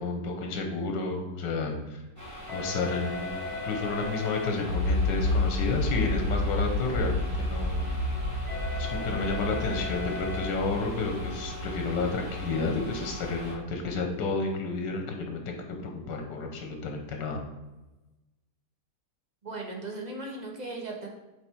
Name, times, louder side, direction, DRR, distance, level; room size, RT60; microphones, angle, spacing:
voice 1, 0.0-2.0 2.5-3.3 3.6-7.8 8.8-17.4, left 3 dB, 85° left, 3 dB, 1.6 m, -31 dB
sound 1, 2.2-13.5, left 2 dB, 10° right, 1.6 m, -39 dB
sound 2, 4.7-13.9, left 2 dB, 55° left, 2.1 m, -31 dB
voice 2, 19.4-21.1, right 2 dB, 35° right, 0 dB, 0.8 m, -37 dB
7.7 x 3.3 x 4.5 m, 1.1 s
omnidirectional pair, 1.9 m